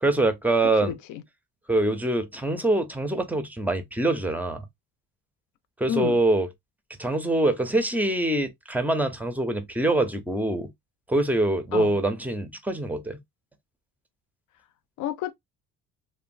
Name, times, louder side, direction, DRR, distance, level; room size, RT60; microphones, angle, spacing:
voice 1, 0.0-0.9 1.7-4.6 5.8-6.5 7.0-10.7 11.1-13.2, right 2 dB, 5° right, 0.4 m, -24 dB
voice 2, 0.6-1.2 5.9-6.2 11.7-12.0 15.0-15.3, left 10 dB, 75° left, 0.5 m, -30 dB
3.0 x 2.0 x 2.4 m
cardioid pair, 120°, 31 cm